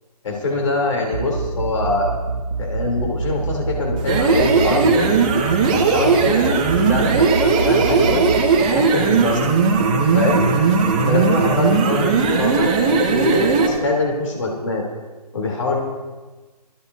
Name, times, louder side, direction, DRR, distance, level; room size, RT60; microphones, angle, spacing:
voice 1, 0.2-2.2 2.6-5.1 5.6-8.2 8.6-9.5 10.1-10.5 11.1-14.8 15.3-15.8, left 2 dB, 50° left, 0 dB, 3.4 m, -23 dB
sound 1, 1.0-8.4, right 4 dB, 45° right, 1.6 m, -26 dB
sound 2, 4.0-13.8, right 5 dB, 10° right, 0.8 m, -17 dB
24.0 x 15.0 x 2.8 m, 1.3 s
hypercardioid pair, 175°, 21 cm